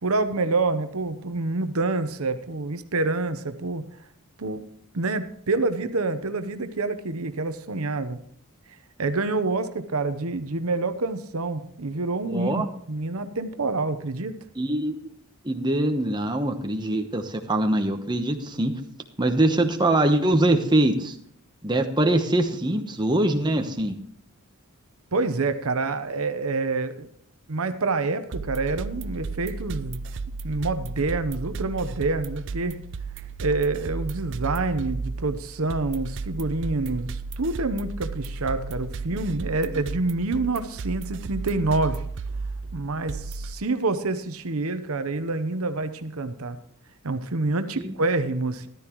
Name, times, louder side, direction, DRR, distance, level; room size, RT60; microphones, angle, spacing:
voice 1, 0.0-3.8 4.4-4.6 4.9-8.2 9.0-14.3 25.1-27.1 27.5-30.0 30.4-32.8 33.4-42.0 42.7-46.6 47.0-48.7, right 3 dB, 75° right, 10 dB, 0.9 m, -27 dB
voice 2, 12.2-12.7 14.6-14.9 15.4-18.7 19.2-21.2 21.6-24.0 39.1-39.3 39.7-39.8 47.8-47.9, right 1 dB, 20° right, 5 dB, 1.0 m, -23 dB
sound 1, 28.3-43.5, right 4 dB, 55° right, 0.4 m, -34 dB
13.5 x 12.0 x 3.1 m, 0.65 s
head